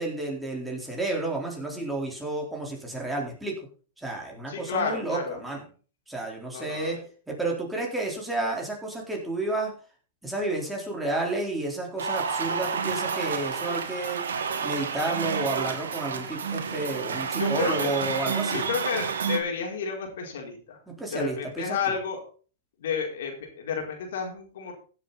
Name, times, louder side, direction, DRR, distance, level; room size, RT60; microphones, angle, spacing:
voice 1, 0.0-3.6 4.0-5.6 6.1-7.0 7.3-9.7 10.2-14.2 14.6-18.7 20.9-21.8, right 2 dB, 5° right, -1 dB, 4.1 m, -31 dB
voice 2, 4.5-5.4 6.5-7.0 17.4-17.9 18.5-20.8 21.1-22.2 22.8-24.7, left 6 dB, 70° left, 1 dB, 4.3 m, -31 dB
sound 1, 12.0-19.4, right 6 dB, 85° right, 1.9 m, -30 dB
16.0 x 7.6 x 4.2 m, 0.39 s
hypercardioid pair, 120°, 0 cm